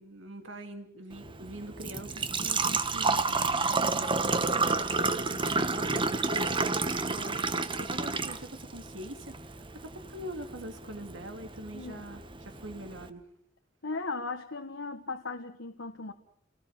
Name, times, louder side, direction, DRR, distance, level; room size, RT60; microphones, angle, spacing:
voice 1, 0.0-6.7 7.0-9.4 9.7-13.3, right 1 dB, 75° right, 6 dB, 2.9 m, -44 dB
Engine / Trickle dribble / Fill (with liquid), 1.1-13.1, right 3 dB, 25° right, 1.2 m, -31 dB
voice 2, 11.7-12.1 13.8-16.1, left 3 dB, 75° left, 4 dB, 1.5 m, -37 dB
29.0 x 18.5 x 7.5 m, 0.65 s
head